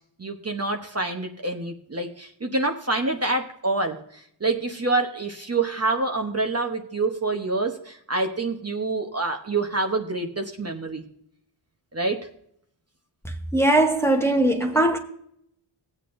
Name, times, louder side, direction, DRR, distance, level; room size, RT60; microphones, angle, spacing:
voice 1, 0.2-11.0 11.9-12.3, right 3 dB, 30° right, 0.9 m, -27 dB
voice 2, 13.5-15.0, right 1 dB, 5° left, 1.0 m, -20 dB
16.0 x 8.6 x 2.6 m
wide cardioid pair, 125°, 49 cm